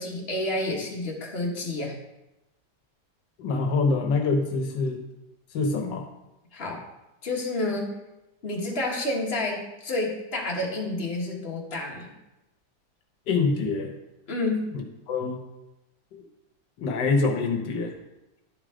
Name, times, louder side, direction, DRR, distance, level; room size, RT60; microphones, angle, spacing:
voice 1, 0.0-1.9 6.5-6.8 7.2-7.9 8.4-12.1 14.3-14.7, left 2 dB, 35° left, -2 dB, 1.6 m, -29 dB
voice 2, 3.4-5.0 5.5-6.1 13.3-13.9 14.7-15.4 16.1-16.2 16.8-17.9, left 3 dB, 85° left, 4 dB, 1.6 m, -25 dB
11.0 x 5.0 x 3.8 m, 0.94 s
omnidirectional pair, 1.8 m